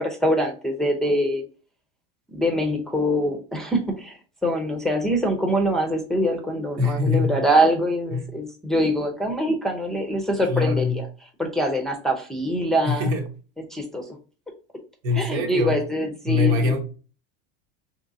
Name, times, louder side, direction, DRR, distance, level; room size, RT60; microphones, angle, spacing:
voice 1, 0.0-1.4 2.3-11.1 11.4-13.1 13.7-14.0 15.1-16.8, equal, ahead, 0.6 m, -24 dB
voice 2, 6.8-7.3 8.1-8.3 10.5-11.0 12.8-13.2 15.0-15.8 16.3-16.8, left 3 dB, 75° right, 1.2 m, -23 dB
3.7 x 3.2 x 2.6 m
supercardioid pair, 120°, 34 cm